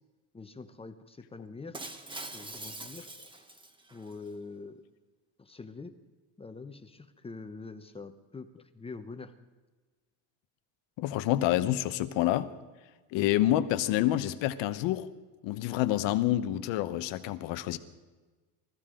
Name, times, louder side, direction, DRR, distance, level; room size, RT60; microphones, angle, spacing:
voice 1, 0.3-1.8 2.3-3.1 3.9-4.8 5.4-5.9 6.4-9.3, left 4 dB, 15° left, 8 dB, 0.8 m, -44 dB
Shatter, 1.7-4.1, right 2 dB, 10° right, 1.1 m, -43 dB
voice 2, 11.0-12.5 13.1-15.1 15.4-17.8, left 14 dB, 90° left, 11 dB, 1.2 m, -28 dB
25.0 x 14.5 x 3.8 m, 1.3 s
cardioid pair, 155°, 43 cm